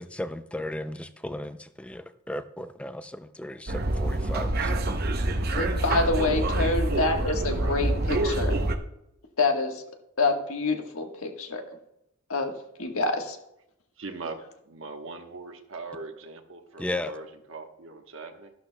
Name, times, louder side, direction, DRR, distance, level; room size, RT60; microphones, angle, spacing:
voice 1, 0.0-4.8 16.8-17.1, left 1 dB, 5° left, 11 dB, 0.4 m, -35 dB
sound 1, 3.7-8.8, right 1 dB, 45° right, 0.7 m, -26 dB
voice 2, 5.5-8.5 9.4-9.8 10.2-11.6 12.3-12.5 12.8-13.4, left 3 dB, 85° left, 4 dB, 1.4 m, -27 dB
voice 3, 7.3-7.8 14.0-14.4 14.7-18.5, right 3 dB, 70° right, 5 dB, 1.1 m, -40 dB
12.5 x 11.5 x 2.2 m, 0.80 s
head